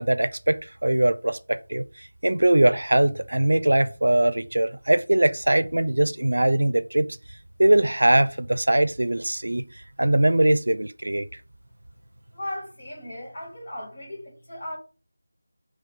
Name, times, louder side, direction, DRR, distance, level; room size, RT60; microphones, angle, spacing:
voice 1, 0.0-7.2 7.6-9.6 10.0-11.3, right 1 dB, 80° right, 0.5 m, -21 dB
voice 2, 12.3-14.8, left 1 dB, 35° left, 3.2 m, -36 dB
5.0 x 3.4 x 5.5 m
figure-of-eight pair, 175°, 0 cm